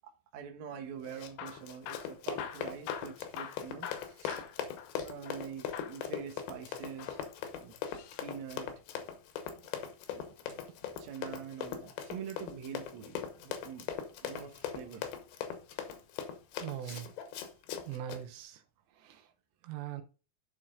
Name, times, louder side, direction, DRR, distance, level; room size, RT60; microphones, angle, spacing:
voice 1, 0.0-4.4 5.0-7.2 7.6-7.7 8.2-8.7 10.1-10.6 11.0-13.9 14.2-15.1 16.8-17.0, right 8 dB, 60° right, 2.0 m, -45 dB
Run, 1.0-18.2, left 8 dB, 75° left, 2.9 m, -41 dB
Hammer / Drill, 1.2-5.5 5.7-6.1 6.9-8.3 10.0-11.3 13.0-13.4 14.2-15.0 15.7-15.9 16.2-16.3 16.9-17.0, left 9 dB, 90° left, 3.2 m, -46 dB
voice 2, 16.6-17.0 17.9-18.6 19.0-19.2 19.6-20.0, right 11 dB, 90° right, 3.3 m, -40 dB
11.5 x 4.5 x 3.8 m
omnidirectional pair, 5.0 m